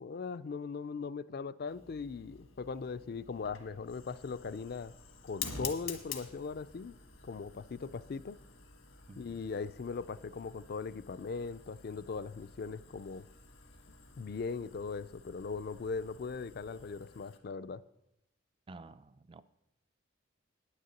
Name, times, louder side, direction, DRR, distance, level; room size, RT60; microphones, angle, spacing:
voice 1, 0.0-4.9 5.2-7.0 7.2-8.4 9.2-13.3 14.2-17.8, left 4 dB, 50° left, 0.4 m, -39 dB
Fire, 1.7-17.4, left 7 dB, 90° left, 1.4 m, -49 dB
sound 1, 3.2-17.0, right 1 dB, 85° right, 1.2 m, -62 dB
voice 2, 9.1-9.5 18.7-19.4, right 3 dB, 25° right, 0.3 m, -51 dB
9.6 x 6.6 x 7.7 m
head